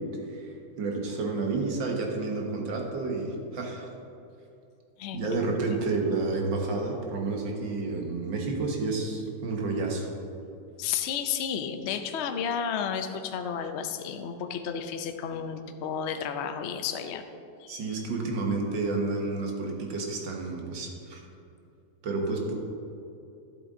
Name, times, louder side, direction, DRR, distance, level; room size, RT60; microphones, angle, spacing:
voice 1, 0.0-3.9 5.1-10.1 17.7-21.2 22.0-22.5, right 3 dB, 75° right, 1 dB, 2.0 m, -30 dB
voice 2, 5.0-5.6 10.8-17.2 17.6-18.0, left 7 dB, 90° left, 7 dB, 0.5 m, -32 dB
12.0 x 7.8 x 3.7 m, 2.7 s
omnidirectional pair, 2.0 m